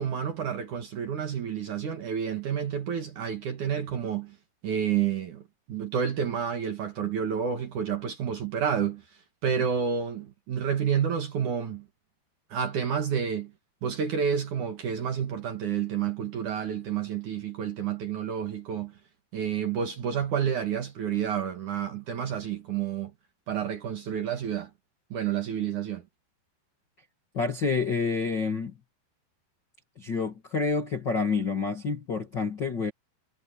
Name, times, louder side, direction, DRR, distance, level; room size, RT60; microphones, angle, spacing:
voice 1, 0.0-4.4 4.6-9.0 9.4-11.9 12.5-13.5 13.8-18.9 19.3-23.1 23.5-24.7 25.1-26.0, right 8 dB, 55° right, 2.6 m, -29 dB
voice 2, 27.3-28.7 30.0-32.9, left 4 dB, 45° left, 1.5 m, -28 dB
omnidirectional pair, 5.2 m